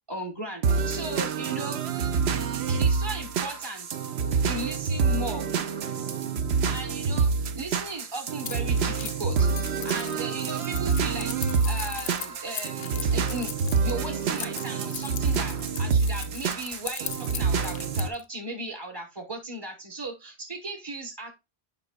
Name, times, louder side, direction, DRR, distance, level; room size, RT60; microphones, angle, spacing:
voice 1, 0.1-1.8 2.7-3.9 4.4-5.5 6.7-9.5 9.8-11.3 11.6-21.3, right 2 dB, 25° right, 2 dB, 1.0 m, -36 dB
sound 1, 0.6-18.1, right 5 dB, 90° right, 1.0 m, -27 dB
Keys jangling, 8.5-18.2, left 9 dB, 75° left, 0.9 m, -39 dB
9.5 x 5.2 x 2.2 m, 0.25 s
omnidirectional pair, 1.0 m